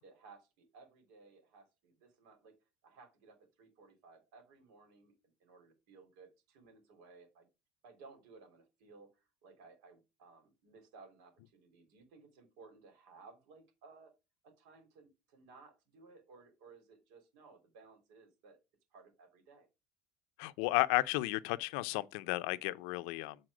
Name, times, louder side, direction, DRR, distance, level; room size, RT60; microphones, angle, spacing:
voice 1, 0.0-2.5 2.8-7.5 7.8-14.1 14.4-18.6 18.9-19.7, right 4 dB, 85° right, 3.3 m, -59 dB
voice 2, 20.4-23.4, left 19 dB, 85° left, 0.5 m, -33 dB
7.7 x 4.1 x 4.9 m
cardioid pair, 160°, 3 cm